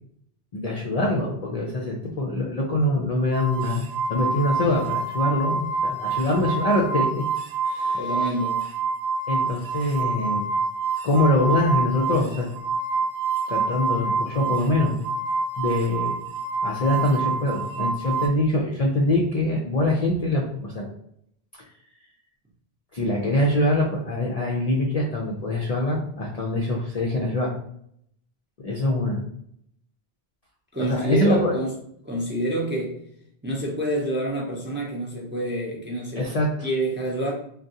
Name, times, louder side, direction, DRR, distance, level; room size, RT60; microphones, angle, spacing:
voice 1, 0.5-7.2 7.6-8.0 9.3-10.4 11.0-12.5 13.5-15.0 15.6-16.1 16.6-20.9 22.9-27.5 28.6-29.2 30.8-31.5 36.2-36.7, left 1 dB, 55° left, -2 dB, 0.4 m, -24 dB
sound 1, 3.3-18.3, right 4 dB, 70° right, 0.9 m, -27 dB
voice 2, 8.0-8.6 30.7-31.7 32.0-33.0 33.4-36.3 36.6-37.3, right 1 dB, 15° right, -2 dB, 0.4 m, -27 dB
3.5 x 2.3 x 2.6 m, 0.70 s
omnidirectional pair, 1.1 m